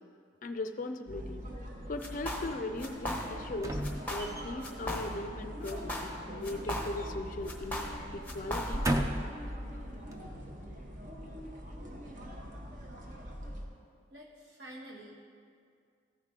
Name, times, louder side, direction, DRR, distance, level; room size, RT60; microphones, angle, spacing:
voice 1, 0.4-1.4 1.9-3.8 4.1-8.9, left 2 dB, 45° left, 7 dB, 0.4 m, -39 dB
sound 1, 1.1-13.7, equal, 40° right, 0.9 m, -44 dB
sound 2, 2.0-2.5 2.8-3.5 3.8-4.4 4.6-5.4 5.6-7.2 7.5-9.0, left 1 dB, 10° left, 0.8 m, -37 dB
sound 3, 3.5-4.7 6.3-7.4 7.7-7.9 8.5-9.4 10.1-10.2, right 1 dB, 15° right, 0.4 m, -34 dB
voice 2, 14.1-15.2, right 1 dB, 65° right, -3 dB, 1.5 m, -48 dB
14.0 x 4.8 x 3.7 m, 2.2 s
head